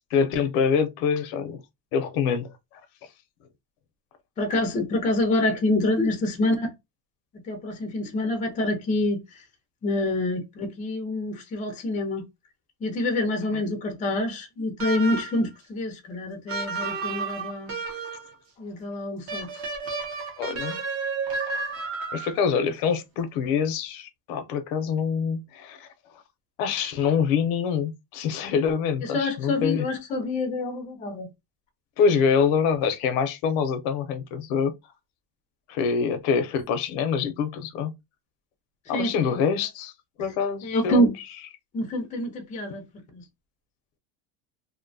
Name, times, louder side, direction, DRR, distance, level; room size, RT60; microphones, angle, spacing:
voice 1, 0.1-1.6 1.9-2.5 13.5-13.6 20.4-20.8 22.1-25.9 26.6-29.9 32.0-34.7 35.7-37.9 38.9-39.9 40.2-41.1, left 6 dB, 75° left, 0.7 m, -25 dB
voice 2, 4.4-6.7 7.4-9.4 9.8-12.2 12.8-17.7 18.6-19.5 29.0-31.3 38.9-39.1 40.6-41.1 41.7-42.8 43.1-43.2, left 1 dB, 20° left, 0.5 m, -26 dB
sound 1, 14.8-15.5 16.5-18.3 19.3-22.5, right 4 dB, 35° right, 0.7 m, -32 dB
2.7 x 2.1 x 2.6 m
cardioid pair, 165°, 41 cm